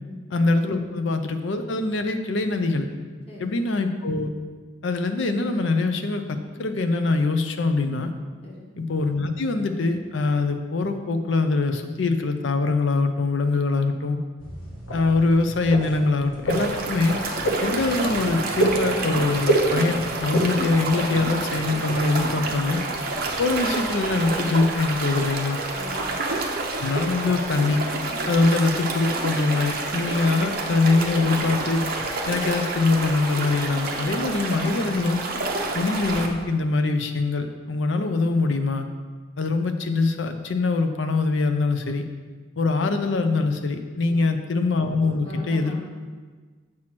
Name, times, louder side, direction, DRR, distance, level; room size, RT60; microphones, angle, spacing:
voice 1, 0.3-2.9 3.4-4.3 4.8-8.1 8.8-14.2 14.9-17.2 17.6-22.8 23.4-25.6 26.8-27.9 28.3-31.8 32.3-35.2 35.7-38.9 39.4-42.0 42.6-45.7, left 3 dB, 60° left, 7 dB, 0.5 m, -23 dB
sound 1, 14.4-22.7, right 2 dB, 85° left, 1.4 m, -29 dB
sound 2, 16.5-36.3, right 3 dB, 45° right, 0.7 m, -29 dB
voice 2, 25.7-26.2 44.1-44.4 45.0-45.7, left 2 dB, 30° left, -5 dB, 1.5 m, -41 dB
7.4 x 3.0 x 5.9 m, 1.4 s
head